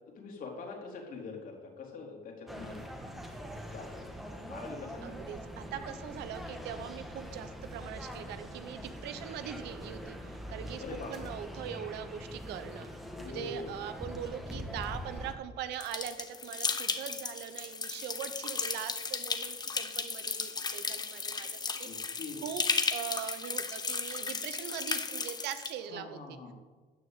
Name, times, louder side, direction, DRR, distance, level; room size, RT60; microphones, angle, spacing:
voice 1, 0.2-3.3 3.7-4.0 4.4-5.3 10.4-11.3 13.1-13.8 21.8-22.4 25.9-26.5, left 3 dB, 55° left, 0 dB, 3.8 m, -44 dB
sound 1, 2.5-15.3, equal, ahead, 1.8 m, -43 dB
voice 2, 5.0-12.9 13.3-21.9 22.4-22.6 22.9-26.4, right 9 dB, 85° right, 10 dB, 1.1 m, -41 dB
sound 2, 15.8-25.7, left 4 dB, 25° left, 1.0 m, -35 dB
13.5 x 6.4 x 9.1 m, 1.4 s
cardioid pair, 110°, 17 cm